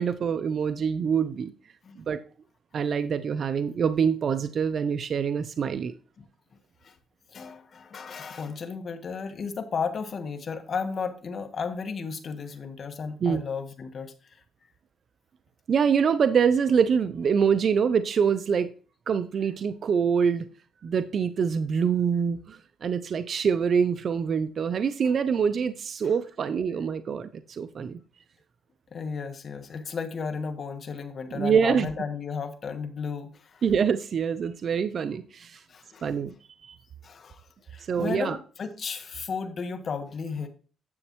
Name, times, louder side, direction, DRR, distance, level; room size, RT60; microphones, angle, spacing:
voice 1, 0.0-1.5 2.1-2.2 2.7-5.9 13.2-13.4 15.7-18.7 19.1-20.5 20.8-28.0 31.3-31.9 33.6-35.6 36.0-36.3 36.6-36.8 37.9-38.4, right 6 dB, 55° right, 12 dB, 0.5 m, -25 dB
voice 2, 7.3-14.4 19.4-19.5 25.0-25.1 26.0-26.1 28.9-33.8 35.7-36.2 37.0-40.5, left 5 dB, 50° left, 7 dB, 1.3 m, -34 dB
9.7 x 7.2 x 3.0 m, 0.39 s
cardioid pair, 90°, 0 cm